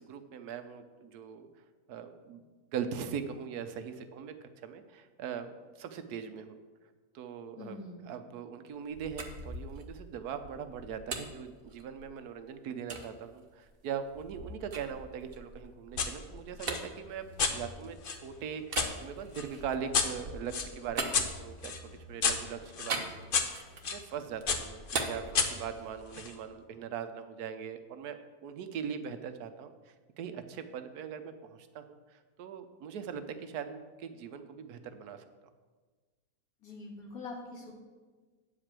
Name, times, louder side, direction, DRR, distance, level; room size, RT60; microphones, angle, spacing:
voice 1, 0.0-1.5 1.9-2.4 2.7-4.3 4.6-6.6 7.1-23.3 23.6-35.3, right 7 dB, 85° right, 9 dB, 1.2 m, -41 dB
voice 2, 7.6-8.1 36.6-37.7, left 3 dB, 70° left, -1 dB, 2.2 m, -44 dB
sound 1, 8.9-12.3 12.9-13.1 13.6-18.1 18.6-21.9 22.9-24.0 24.3-26.1, right 3 dB, 45° right, 1.0 m, -41 dB
sound 2, 16.0-16.1 16.6-18.9 19.3-24.0 24.5-26.3, left 5 dB, 50° left, 0.7 m, -33 dB
9.2 x 5.0 x 7.4 m, 1.4 s
omnidirectional pair, 1.6 m